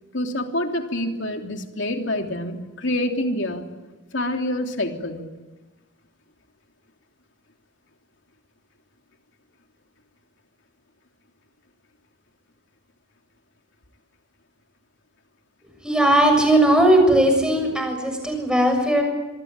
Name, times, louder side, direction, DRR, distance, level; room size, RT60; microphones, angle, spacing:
voice 1, 0.1-3.7 4.1-5.2, left 1 dB, 65° left, 3 dB, 3.1 m, -26 dB
voice 2, 15.8-19.0, right 1 dB, 5° right, 4 dB, 6.6 m, -18 dB
27.5 x 22.0 x 9.0 m, 1.2 s
head